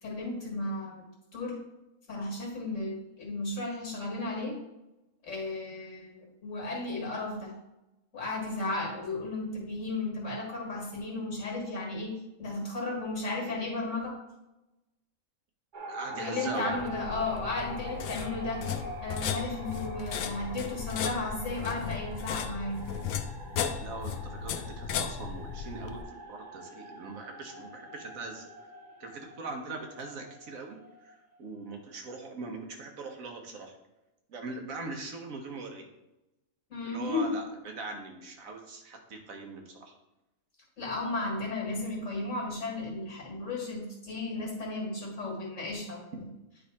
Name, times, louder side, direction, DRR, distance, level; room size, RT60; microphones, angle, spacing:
voice 1, 0.0-1.1 1.3-1.6 2.1-4.6 5.2-7.5 8.1-12.1 12.4-14.1 16.1-18.6 19.0-22.8 36.7-37.3 40.8-46.3, left 2 dB, 60° left, -1 dB, 2.1 m, -34 dB
sound 1, 15.7-31.7, right 1 dB, 40° right, 0.8 m, -44 dB
voice 2, 15.9-16.8 23.8-28.5 29.0-30.8 31.0-33.8 34.3-35.8 36.8-39.9, right 3 dB, 80° right, 3 dB, 1.5 m, -41 dB
sound 2, 16.7-26.0, left 7 dB, 90° left, 1.0 m, -36 dB
9.4 x 3.4 x 4.1 m, 0.96 s
omnidirectional pair, 1.4 m